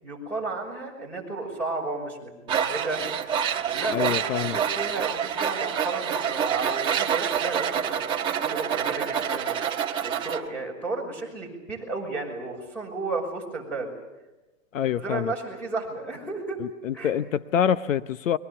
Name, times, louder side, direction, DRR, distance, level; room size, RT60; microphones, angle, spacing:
voice 1, 0.0-3.0 3.6-8.0 8.5-9.5 10.0-13.9 15.0-16.6 16.9-17.1, right 3 dB, 5° left, 1 dB, 5.8 m, -33 dB
Tools, 2.5-10.4, right 8 dB, 10° right, 1.2 m, -27 dB
voice 2, 3.9-4.6 14.7-15.3 16.6-18.4, left 9 dB, 70° left, 14 dB, 0.9 m, -26 dB
30.0 x 22.5 x 7.0 m, 1.1 s
hypercardioid pair, 165°, 41 cm